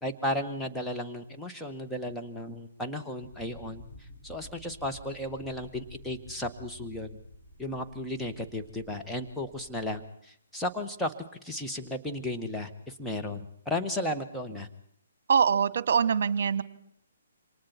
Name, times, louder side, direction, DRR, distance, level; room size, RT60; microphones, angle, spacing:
voice 1, 0.0-3.8 4.2-7.1 7.6-11.1 11.4-14.7, left 1 dB, 5° left, 2 dB, 1.8 m, -34 dB
sound 1, 3.2-10.0, left 1 dB, 30° left, 5.5 m, -51 dB
voice 2, 15.3-16.6, right 7 dB, 55° right, 17 dB, 1.3 m, -23 dB
28.0 x 25.5 x 4.5 m, 0.67 s
figure-of-eight pair, 135°, 0 cm